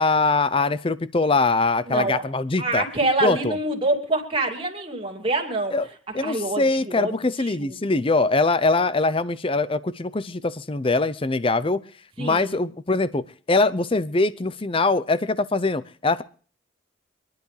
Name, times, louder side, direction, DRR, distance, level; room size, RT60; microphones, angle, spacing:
voice 1, 0.0-2.8 3.2-3.6 5.7-5.9 6.1-11.8 12.2-16.2, left 3 dB, 30° left, 16 dB, 0.6 m, -22 dB
voice 2, 1.9-2.2 2.6-5.7 6.2-7.8 12.2-12.6, right 2 dB, 30° right, 2 dB, 2.4 m, -26 dB
25.5 x 10.5 x 3.3 m, 0.42 s
head